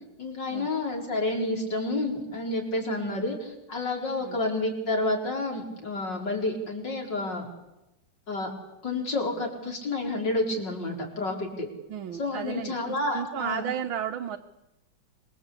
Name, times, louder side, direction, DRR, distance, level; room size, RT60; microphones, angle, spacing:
voice 1, 0.2-7.5 8.3-8.5 8.8-11.7 12.2-13.7, left 2 dB, 60° left, 1 dB, 5.4 m, -29 dB
voice 2, 11.9-14.4, right 9 dB, 85° right, 6 dB, 1.9 m, -34 dB
26.0 x 22.0 x 8.4 m, 0.94 s
omnidirectional pair, 2.2 m